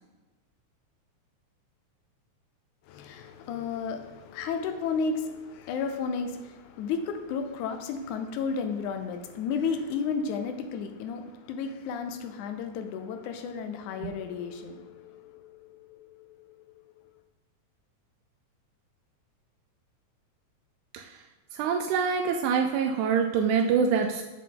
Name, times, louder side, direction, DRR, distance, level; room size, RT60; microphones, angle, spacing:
voice 1, 2.9-15.1, left 5 dB, 80° left, 7 dB, 1.9 m, -32 dB
voice 2, 21.5-24.2, right 6 dB, 80° right, 3 dB, 1.9 m, -25 dB
7.5 x 5.5 x 3.8 m, 1.1 s
omnidirectional pair, 3.6 m